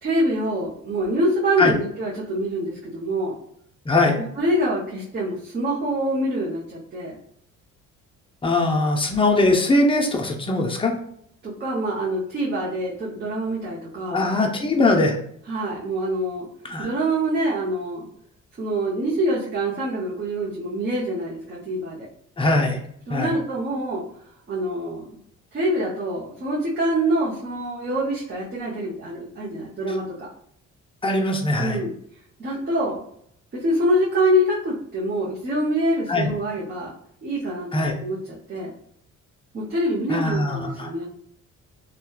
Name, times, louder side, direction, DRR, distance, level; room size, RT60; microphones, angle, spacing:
voice 1, 0.0-3.4 4.4-7.2 11.4-14.2 15.5-16.5 16.8-18.1 18.6-22.1 23.1-24.0 24.5-25.1 25.5-30.3 31.6-32.0 32.4-33.0 33.5-36.9 37.2-38.2 38.5-38.7 39.5-41.1, right 1 dB, 35° right, -6 dB, 0.8 m, -25 dB
voice 2, 3.9-4.2 8.4-10.9 14.1-15.2 16.6-16.9 22.4-22.8 23.1-23.3 31.0-31.8 36.1-36.3 37.7-37.9 40.1-40.9, left 2 dB, 20° left, 2 dB, 0.5 m, -21 dB
2.7 x 2.2 x 2.2 m, 0.67 s
cardioid pair, 90°, 30 cm